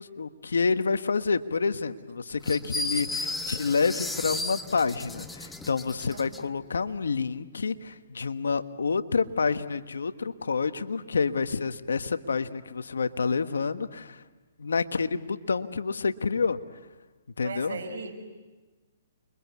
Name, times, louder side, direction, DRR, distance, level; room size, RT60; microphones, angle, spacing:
voice 1, 0.0-14.2 14.6-16.6 17.4-17.8, left 5 dB, 85° left, 10 dB, 1.3 m, -28 dB
sound 1, 2.4-6.4, left 2 dB, 5° left, 1.0 m, -34 dB
voice 2, 17.4-18.2, right 4 dB, 70° right, 4 dB, 6.2 m, -37 dB
30.0 x 23.5 x 8.4 m, 1.3 s
hypercardioid pair, 145°, 0 cm